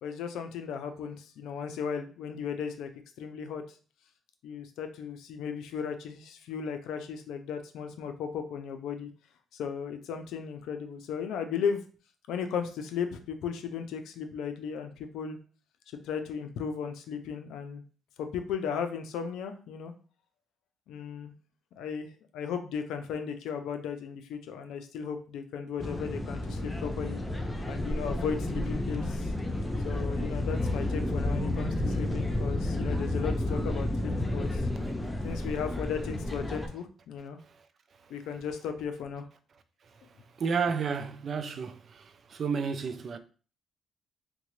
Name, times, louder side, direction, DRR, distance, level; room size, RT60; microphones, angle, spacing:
voice 1, 0.0-2.9 3.2-3.8 4.4-9.1 9.5-11.8 12.3-15.4 15.9-17.8 18.2-19.9 20.9-21.3 21.8-27.2 27.7-29.3 29.8-34.7 35.2-37.4 38.1-39.3, left 7 dB, 85° left, 0.5 m, -36 dB
sound 1, 25.8-36.7, left 1 dB, 15° left, 0.5 m, -31 dB
voice 2, 40.4-41.8 42.3-43.2, right 5 dB, 50° right, 0.4 m, -30 dB
3.7 x 2.2 x 3.1 m
cardioid pair, 90°, 0 cm